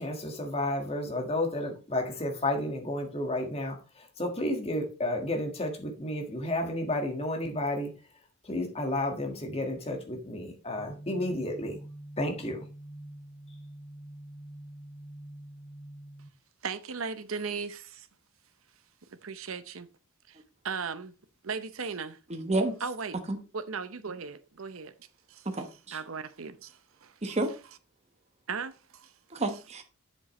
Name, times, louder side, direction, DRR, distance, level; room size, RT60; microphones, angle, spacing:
voice 1, 0.0-7.9 8.4-11.8 12.2-12.6, left 1 dB, 30° left, 1.7 m, -32 dB
Bottle Hum, 10.7-16.3, right 1 dB, 55° left, 2.5 m, -46 dB
voice 2, 16.6-18.1 19.1-19.9 20.3-20.4 20.6-21.1 21.4-22.2 22.8-23.2 23.5-24.9 25.3-27.2 28.5-29.1, right 5 dB, 65° right, 0.8 m, -37 dB
voice 3, 22.3-22.7 23.3-23.4 25.6-26.0 27.2-27.5 29.3-29.8, right 2 dB, 30° right, 1.0 m, -30 dB
8.1 x 7.3 x 3.1 m
head